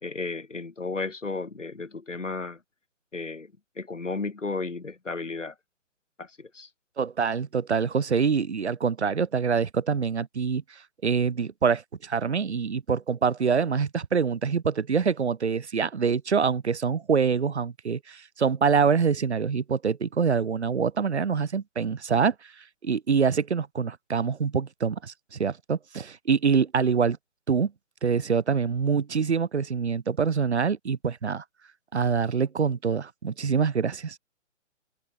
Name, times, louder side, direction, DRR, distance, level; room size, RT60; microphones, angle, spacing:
voice 1, 0.0-2.6 3.1-3.5 3.8-5.5 6.2-6.7, left 3 dB, 75° left, 3.8 m, -33 dB
voice 2, 7.0-22.3 22.8-27.2 27.5-27.7 28.0-31.4 31.9-34.2, right 6 dB, 60° right, 1.6 m, -25 dB
figure-of-eight pair, 140°, 37 cm